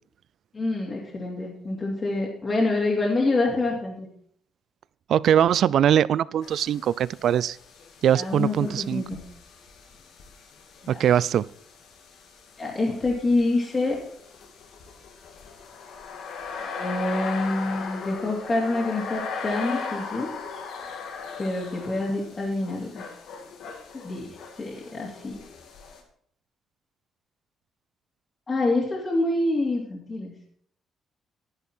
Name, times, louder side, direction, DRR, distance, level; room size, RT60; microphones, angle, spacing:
voice 1, 0.5-4.1 8.1-9.2 10.8-11.0 12.6-14.0 16.6-20.3 21.4-23.1 24.0-24.3 24.6-25.4 28.5-30.3, left 2 dB, 30° left, -3 dB, 2.9 m, -26 dB
voice 2, 5.1-7.6 8.0-9.0 10.9-11.5, right 10 dB, 70° right, 21 dB, 0.4 m, -21 dB
sound 1, 6.4-26.0, left 5 dB, 80° left, 2.3 m, -39 dB
10.5 x 10.5 x 4.4 m, 0.63 s
cardioid pair, 90°, 0 cm